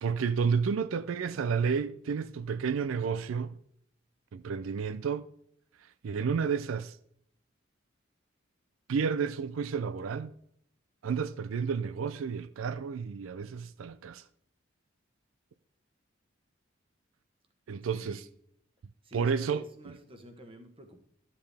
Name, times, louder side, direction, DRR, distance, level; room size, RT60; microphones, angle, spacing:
voice 1, 0.0-3.5 4.3-5.3 6.0-7.0 8.9-10.3 11.0-14.2 17.7-18.2 19.1-19.7, right 6 dB, 90° right, 0.4 m, -31 dB
voice 2, 17.9-18.2 19.0-21.0, equal, 25° right, 1.2 m, -50 dB
12.5 x 7.6 x 3.4 m
head